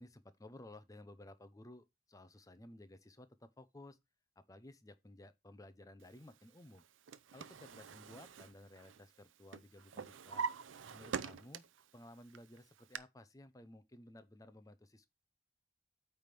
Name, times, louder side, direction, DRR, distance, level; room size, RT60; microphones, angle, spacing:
voice 1, 0.0-4.0 4.4-6.8 7.3-10.5 10.9-11.7 11.9-15.1, left 1 dB, 20° left, 0.6 m, -56 dB
Drawer open or close, 6.8-9.2 9.5-11.9 12.3-13.0, right 5 dB, 80° right, 0.5 m, -44 dB
8.7 x 3.5 x 5.8 m
head